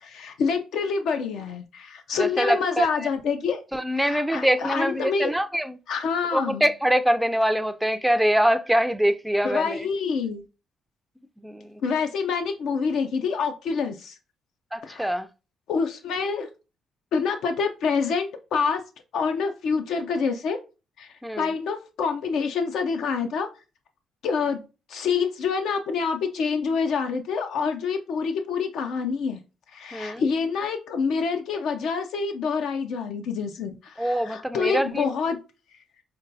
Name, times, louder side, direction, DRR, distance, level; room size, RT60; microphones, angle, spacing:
voice 1, 0.0-3.6 4.0-5.3 5.9-6.7 9.4-10.5 11.8-14.2 14.8-15.1 15.7-16.5 17.1-18.8 19.1-20.6 21.0-23.5 24.2-24.6 24.9-29.4 29.7-35.4, left 5 dB, 80° left, 0.4 m, -27 dB
voice 2, 2.2-3.1 3.7-5.8 6.3-9.9 11.4-11.8 14.7-15.3 21.2-21.5 29.9-30.2 34.0-35.1, equal, 5° right, 0.3 m, -24 dB
5.1 x 2.2 x 2.6 m
cardioid pair, 90°, 0 cm